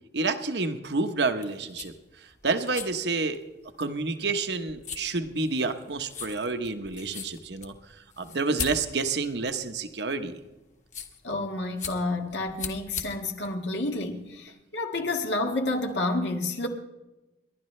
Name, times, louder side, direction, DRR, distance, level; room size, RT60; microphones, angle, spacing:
voice 1, 0.1-1.9 2.4-3.4 3.8-7.7 8.2-10.4, right 3 dB, 70° right, 1.1 m, -29 dB
sound 1, 1.3-14.5, left 6 dB, 45° left, 1.5 m, -41 dB
voice 2, 11.2-16.7, left 2 dB, 90° left, 1.8 m, -29 dB
29.5 x 11.5 x 3.3 m
head